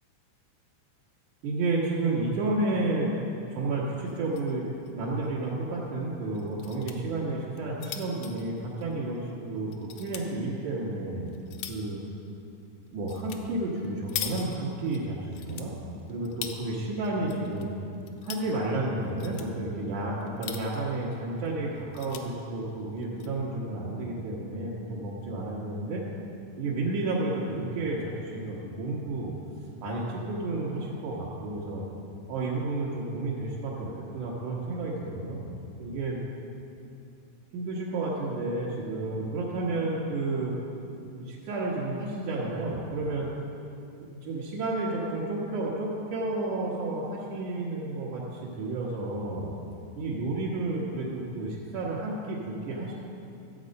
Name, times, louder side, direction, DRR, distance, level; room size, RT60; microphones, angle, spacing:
voice 1, 1.4-4.7 4.9-11.3 11.7-12.0 12.9-15.8 16.1-17.7 18.2-26.1 26.6-29.3 29.8-31.8 32.3-35.5 35.8-36.2 37.5-40.5 41.0-43.3 44.0-49.5 50.0-52.9, right 2 dB, 80° right, -8 dB, 2.8 m, -31 dB
sound 1, 4.1-4.5 4.9-5.0 5.2-5.3 6.3-7.0 7.5-9.3 9.7-10.3 10.9-11.9 13.1-13.4 13.7-15.0 15.3-16.6 17.0-17.6 17.9-18.5 19.0-19.5 20.2-20.9 21.4-21.5 21.8-22.2 23.0-23.3, left 9 dB, 85° left, 2.1 m, -40 dB
13.5 x 7.6 x 5.3 m, 2.7 s
omnidirectional pair, 3.5 m